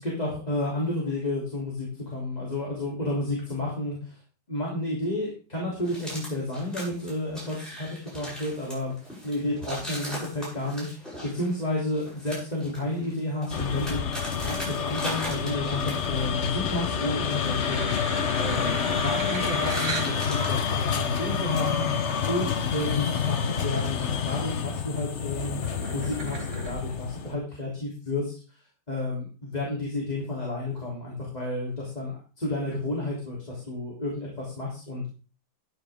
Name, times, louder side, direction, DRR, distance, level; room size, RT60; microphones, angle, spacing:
voice 1, 0.0-4.2 4.5-14.0 14.4-17.9 18.3-21.8 22.3-25.6 25.9-28.3 28.9-35.1, left 1 dB, 20° left, -4 dB, 3.3 m, -31 dB
sound 1, 5.8-16.3 16.6-19.3 19.5-22.1, equal, ahead, 7.8 m, -40 dB
sound 2, 13.5-27.3, left 7 dB, 45° left, 1.0 m, -28 dB
sound 3, 17.7-20.2 20.9-21.0 22.4-22.5 22.7-23.1 23.5-24.0 24.4-26.7, right 4 dB, 40° right, 1.8 m, -38 dB
13.5 x 10.0 x 3.6 m, 0.36 s
omnidirectional pair, 2.1 m